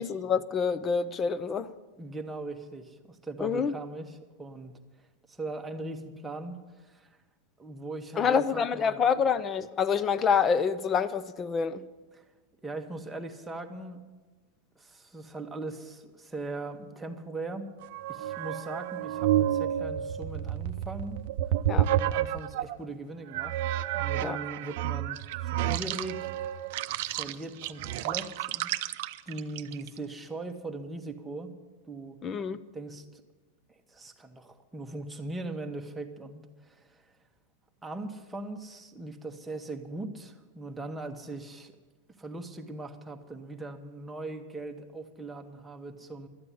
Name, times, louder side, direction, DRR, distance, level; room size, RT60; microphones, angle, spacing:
voice 1, 0.0-1.7 3.4-3.7 8.2-11.8 21.7-21.9 24.2-24.4 32.2-32.6, left 6 dB, 20° left, 0.6 m, -27 dB
voice 2, 2.0-4.7 5.3-7.1 7.6-9.1 12.1-12.2 12.6-14.0 14.8-17.7 18.1-21.2 22.0-23.6 23.9-26.6 27.2-28.7 29.3-31.5 31.9-32.2 32.7-33.2 33.7-37.1 37.8-41.7 42.2-46.3, right 2 dB, 10° right, 1.0 m, -40 dB
sound 1, 17.8-22.8 23.3-30.0, right 12 dB, 60° right, 0.6 m, -30 dB
12.5 x 8.7 x 9.8 m
supercardioid pair, 150°, 0 cm